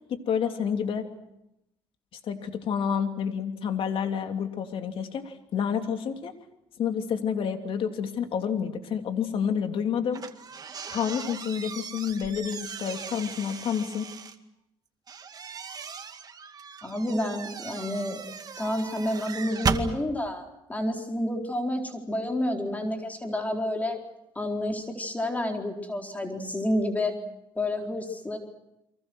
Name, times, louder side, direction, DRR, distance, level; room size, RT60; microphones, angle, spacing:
voice 1, 0.1-1.1 2.2-6.3 6.8-10.2 10.9-14.1, left 7 dB, 65° left, 6 dB, 3.0 m, -29 dB
sound 1, 10.1-14.4 15.1-19.9, right 6 dB, 40° right, 2.2 m, -36 dB
voice 2, 16.8-18.2 18.6-20.4 20.7-24.0 24.4-27.1 27.6-28.4, left 1 dB, 15° left, 3 dB, 4.3 m, -29 dB
30.0 x 24.0 x 6.4 m, 0.85 s
cardioid pair, 90°, 10 cm